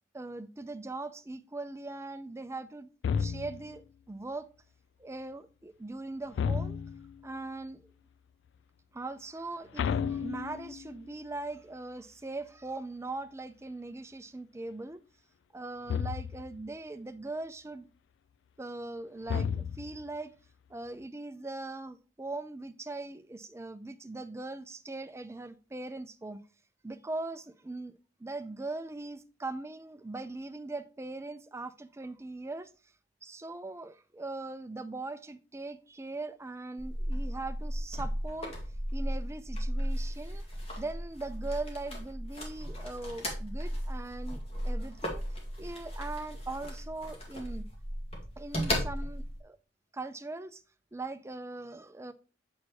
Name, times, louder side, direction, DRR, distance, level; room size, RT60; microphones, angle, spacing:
voice 1, 0.1-2.9 3.2-4.5 5.0-6.8 7.2-7.8 8.9-15.0 15.5-17.9 18.6-20.3 20.7-26.5 26.8-32.7 33.2-38.5 38.9-40.5 40.7-45.2 45.6-47.7 48.4-49.6 49.9-50.6 50.9-52.1, right 2 dB, 15° right, 0.4 m, -40 dB
sound 1, 3.0-3.8 6.3-7.2 9.8-10.9 15.9-16.6 19.3-20.1, left 6 dB, 70° left, 0.3 m, -32 dB
sound 2, 36.8-49.4, equal, 35° left, 1.9 m, -35 dB
7.3 x 4.6 x 2.9 m
head